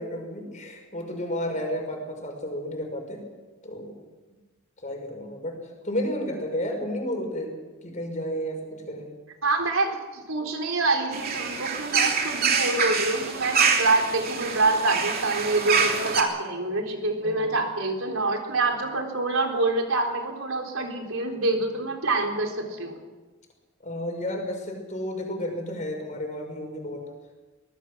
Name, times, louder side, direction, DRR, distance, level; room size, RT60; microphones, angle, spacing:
voice 1, 0.0-3.2 3.6-4.0 4.8-7.5 7.8-9.1 17.2-17.5 23.8-27.1, equal, 35° left, 3 dB, 5.6 m, -32 dB
voice 2, 9.4-23.0, right 2 dB, 85° right, 3 dB, 4.1 m, -26 dB
sound 1, 11.1-16.2, right 5 dB, 45° right, 3.0 m, -25 dB
23.5 x 19.0 x 6.4 m, 1.3 s
head